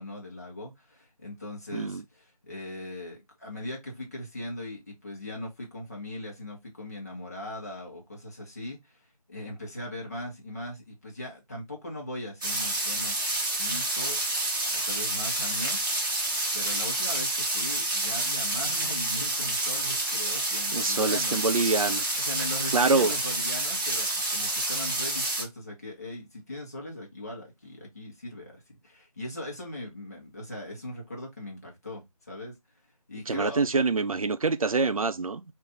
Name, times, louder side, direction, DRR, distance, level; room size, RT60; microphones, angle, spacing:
voice 1, 0.0-9.0 9.3-14.2 14.7-15.8 16.5-21.4 22.2-32.5 33.1-33.6, left 1 dB, 25° left, 1.0 m, -39 dB
voice 2, 1.7-2.0 20.7-22.3 22.7-23.1 33.3-35.4, right 3 dB, 60° right, 0.4 m, -25 dB
sound 1, 12.4-25.4, right 2 dB, 35° right, 1.1 m, -29 dB
3.2 x 2.6 x 3.7 m
figure-of-eight pair, 165°, 20 cm